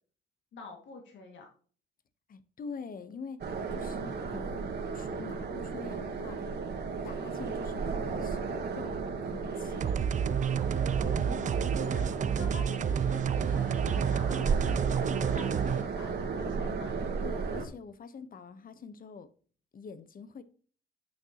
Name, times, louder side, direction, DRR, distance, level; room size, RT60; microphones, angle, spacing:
voice 1, 0.5-1.5 11.2-17.0, left 4 dB, 70° left, 2.1 m, -48 dB
voice 2, 2.3-4.6 4.9-6.4 7.0-9.9 17.2-19.3 19.7-20.4, left 5 dB, 45° left, 1.0 m, -45 dB
sound 1, 3.4-17.6, right 5 dB, 55° right, 1.7 m, -34 dB
sound 2, 9.8-15.8, right 8 dB, 40° right, 0.4 m, -30 dB
8.8 x 6.2 x 2.9 m
cardioid pair, 90°, 20 cm